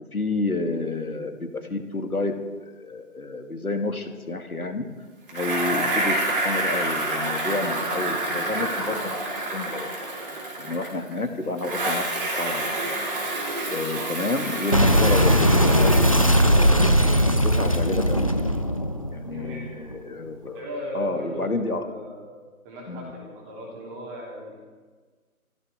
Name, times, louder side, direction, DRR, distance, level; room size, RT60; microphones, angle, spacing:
voice 1, 0.1-2.4 2.6-4.9 5.3-9.2 9.5-9.9 10.6-12.8 13.7-18.3 19.1-20.6 20.9-21.8 22.9-23.1, left 3 dB, 75° left, 5 dB, 2.3 m, -30 dB
Bicycle, 5.3-11.1 11.6-16.8, right 2 dB, 40° right, 4.5 m, -28 dB
Boom, 14.7-19.9, equal, 25° left, 0.6 m, -19 dB
voice 2, 19.3-19.8 20.5-21.5 21.7-22.3 22.6-24.6, equal, 10° right, -2 dB, 3.4 m, -37 dB
24.5 x 16.0 x 3.7 m, 1.4 s
figure-of-eight pair, 150°, 43 cm